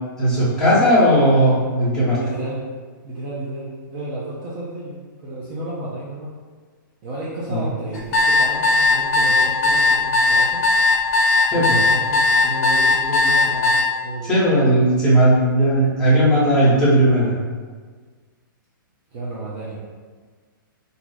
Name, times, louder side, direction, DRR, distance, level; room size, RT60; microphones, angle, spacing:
voice 1, 0.2-2.2 7.5-7.7 11.5-11.8 14.2-17.3, right 1 dB, 5° left, -12 dB, 1.0 m, -16 dB
voice 2, 2.1-2.6 3.0-5.0 5.2-6.3 7.0-10.6 11.5-14.3 19.1-19.8, right 1 dB, 30° right, -7 dB, 0.5 m, -31 dB
sound 1, 7.9-13.8, left 2 dB, 45° left, 0.7 m, -17 dB
2.6 x 2.3 x 3.9 m, 1.5 s
hypercardioid pair, 155°, 12 cm